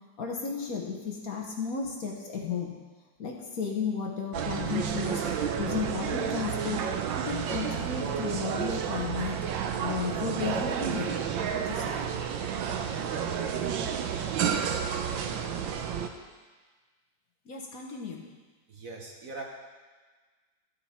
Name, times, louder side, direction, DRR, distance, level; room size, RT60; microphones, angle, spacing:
voice 1, 0.2-2.7 3.2-5.2 5.6-6.8 7.2-9.4 9.8-11.2 11.5-11.9 17.5-18.3, left 5 dB, 55° left, 0 dB, 1.5 m, -33 dB
sound 1, 4.3-16.1, right 7 dB, 80° right, 1.5 m, -31 dB
voice 2, 18.7-19.4, right 3 dB, 50° right, 0 dB, 1.4 m, -41 dB
13.0 x 7.2 x 4.3 m, 1.4 s
omnidirectional pair, 2.0 m